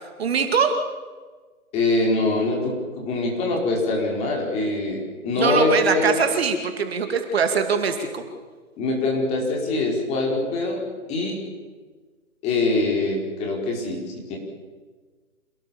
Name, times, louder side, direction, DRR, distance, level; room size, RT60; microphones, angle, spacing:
voice 1, 0.2-0.7 5.3-8.2, right 5 dB, 45° right, 6 dB, 2.5 m, -22 dB
voice 2, 1.7-6.1 8.8-10.8 11.1-11.4 12.4-14.0 14.3-14.4, left 2 dB, 15° left, 0 dB, 4.4 m, -23 dB
27.5 x 18.5 x 7.3 m, 1.4 s
hypercardioid pair, 160°, 43 cm